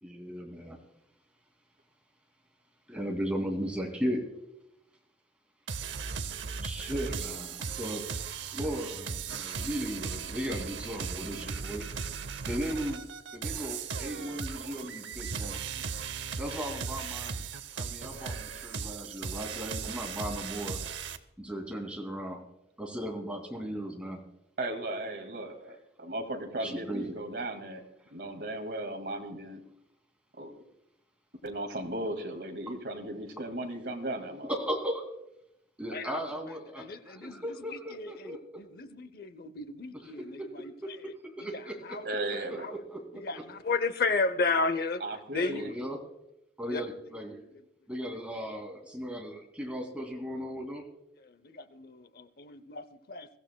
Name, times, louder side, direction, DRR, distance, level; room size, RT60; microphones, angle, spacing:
voice 1, 0.0-0.8 2.9-4.2 6.6-8.0 8.5-11.9 12.5-13.0 13.3-15.6 16.4-17.4 17.7-20.8 21.4-22.4 22.8-24.2 26.6-27.1 34.5-35.0 35.8-38.6 40.0-42.0 42.5-43.4 45.5-46.0 46.6-47.4 47.9-50.8, equal, 5° right, 2.3 m, -36 dB
sound 1, 5.7-21.2, right 6 dB, 85° right, 0.7 m, -37 dB
voice 2, 24.6-27.8 28.1-29.6 30.4-30.5 31.4-34.5 42.0-42.7 45.0-45.7, right 1 dB, 65° right, 2.0 m, -36 dB
voice 3, 36.8-40.7 41.5-42.7 43.2-45.0 45.3-45.6 46.7-46.8 48.4-48.5 51.2-53.3, left 3 dB, 55° left, 0.7 m, -33 dB
22.5 x 15.0 x 2.2 m
head